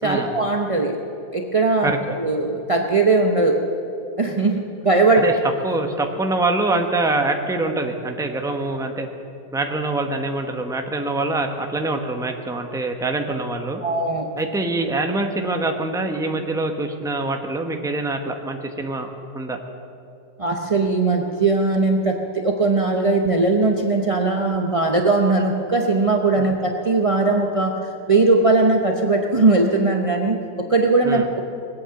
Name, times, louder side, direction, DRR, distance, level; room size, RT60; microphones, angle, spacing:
voice 1, 0.0-1.0 1.3-1.9 2.2-3.6 4.2-5.2 13.8-14.3 20.4-31.4, right 3 dB, 55° right, 2 dB, 0.3 m, -19 dB
voice 2, 5.6-9.1 9.5-13.8 14.4-19.1 19.3-19.6 26.4-26.5 31.0-31.3, right 2 dB, 5° right, 4 dB, 0.6 m, -24 dB
20.5 x 8.6 x 7.7 m, 2.8 s
omnidirectional pair, 2.0 m